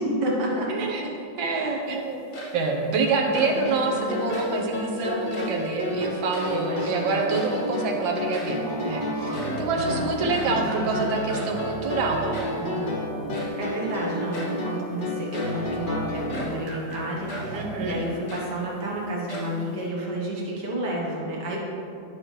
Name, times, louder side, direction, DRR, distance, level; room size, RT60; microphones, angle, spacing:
voice 1, 0.0-0.9 1.5-1.8 6.5-7.3 9.7-10.1 10.5-10.9 13.6-21.6, right 1 dB, 65° right, -4 dB, 1.8 m, -30 dB
voice 2, 0.7-2.2 2.5-12.3 12.6-13.0 17.5-18.0, right 3 dB, 80° right, 1 dB, 1.7 m, -27 dB
sound 1, 2.1-2.8 3.2-3.7 4.2-4.7 5.2-5.7 6.1-6.9 7.1-7.8 8.0-8.1 8.3-8.7 9.1-10.7 11.3-11.7 12.3-12.7 13.3-13.7 14.3-14.6 15.1-15.7 16.3-16.7 17.3-17.6 18.0-18.9 19.3-19.9, right 1 dB, 80° left, 2.3 m, -40 dB
sound 2, 3.3-16.6, left 1 dB, 45° left, 0.6 m, -32 dB
sound 3, 8.5-13.8 15.4-18.0, right 1 dB, 45° right, 1.1 m, -35 dB
11.0 x 6.1 x 3.2 m, 2.7 s
omnidirectional pair, 2.1 m